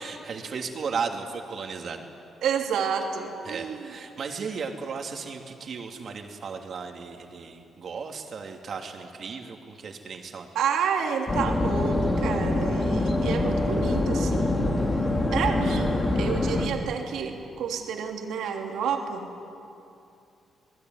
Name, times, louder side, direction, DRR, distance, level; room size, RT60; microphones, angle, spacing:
voice 1, 0.0-2.1 3.4-10.5, right 5 dB, 55° right, 3 dB, 3.0 m, -35 dB
voice 2, 2.4-3.9 10.5-14.8 15.3-19.3, right 7 dB, 90° right, 2 dB, 3.1 m, -29 dB
sound 1, 11.3-16.7, left 2 dB, 30° left, 2.9 m, -25 dB
29.0 x 20.5 x 9.7 m, 2.7 s
cardioid pair, 105°, 0 cm